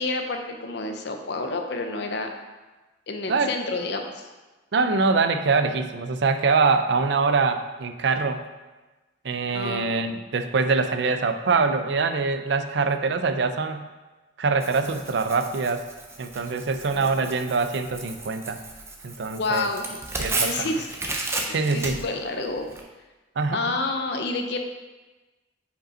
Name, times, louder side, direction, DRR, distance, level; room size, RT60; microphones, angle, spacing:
voice 1, 0.0-2.3 3.1-4.3 9.5-10.0 19.3-19.9 20.2-20.9 21.5-22.6 23.5-24.6, left 3 dB, 60° left, 5 dB, 0.7 m, -29 dB
voice 2, 4.7-8.4 9.2-13.8 14.4-15.9 16.2-18.6 19.0-19.7 20.2-20.7 21.5-22.0 23.4-23.6, right 4 dB, 60° right, 8 dB, 0.4 m, -24 dB
Tearing, 14.6-22.8, right 2 dB, 15° right, 0.6 m, -34 dB
5.3 x 5.1 x 4.3 m, 1.2 s
head